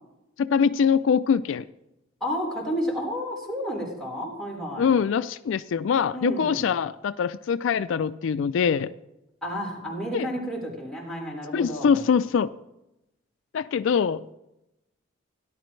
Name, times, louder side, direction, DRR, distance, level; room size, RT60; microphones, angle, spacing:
voice 1, 0.4-1.6 4.8-8.9 10.1-10.3 11.5-12.5 13.5-14.3, left 6 dB, 70° left, 14 dB, 0.3 m, -23 dB
voice 2, 2.2-4.9 6.1-6.6 9.4-12.0, equal, ahead, -5 dB, 4.1 m, -31 dB
17.5 x 11.0 x 3.2 m, 0.91 s
head